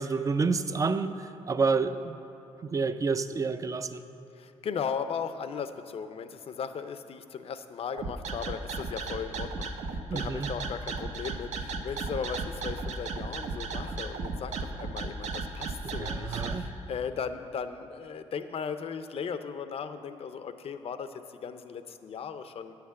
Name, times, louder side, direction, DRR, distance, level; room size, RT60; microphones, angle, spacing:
voice 1, 0.0-2.2 2.6-4.0 10.1-10.5 15.8-16.7, right 4 dB, 25° right, 11 dB, 0.4 m, -29 dB
voice 2, 4.3-21.1 21.4-22.7, left 6 dB, 55° left, 10 dB, 0.6 m, -37 dB
sound 1, 8.0-16.6, right 4 dB, 70° right, 0.8 m, -34 dB
9.3 x 5.9 x 7.5 m, 2.9 s
cardioid pair, 90°, 12 cm